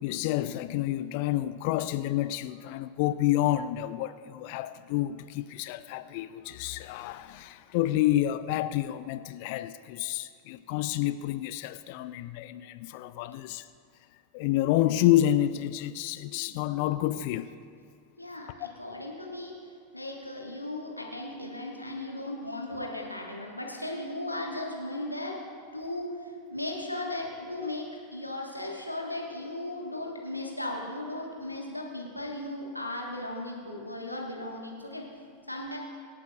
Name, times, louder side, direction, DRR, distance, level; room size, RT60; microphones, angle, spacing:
voice 1, 0.0-13.7 14.3-17.5, left 13 dB, 50° left, 0.4 m, -29 dB
voice 2, 18.2-19.5 19.9-25.4 25.7-35.0 35.5-35.8, left 1 dB, 90° left, 1.5 m, -36 dB
25.0 x 8.4 x 2.5 m
figure-of-eight pair, 85°, 0 cm